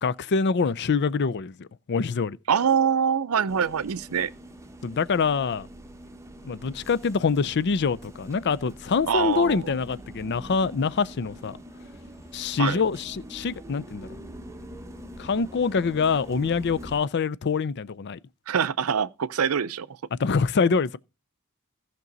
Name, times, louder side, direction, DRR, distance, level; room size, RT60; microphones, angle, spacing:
voice 1, 0.0-2.4 4.8-5.7 6.4-11.6 12.3-14.1 15.2-18.2 20.2-21.0, left 5 dB, 55° left, 0.5 m, -25 dB
voice 2, 2.5-4.3 9.1-9.7 12.6-12.8 18.5-19.9, right 7 dB, 90° right, 0.5 m, -24 dB
sound 1, 3.5-17.0, equal, 15° right, 1.2 m, -44 dB
15.0 x 6.0 x 4.0 m
head